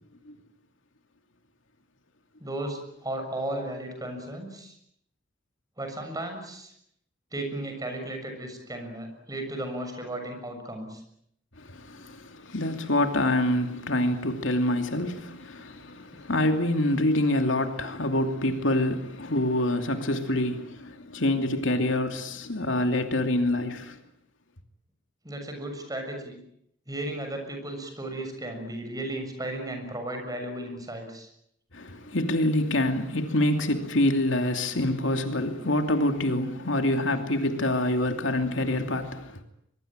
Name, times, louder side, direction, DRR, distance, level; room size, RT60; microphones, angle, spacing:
voice 1, 2.4-4.7 5.8-6.7 7.3-11.0 25.2-26.4 26.9-31.3, right 1 dB, 20° right, 6.9 m, -35 dB
voice 2, 11.6-24.0 31.7-39.4, left 1 dB, 75° left, 2.7 m, -26 dB
24.0 x 23.0 x 9.0 m
head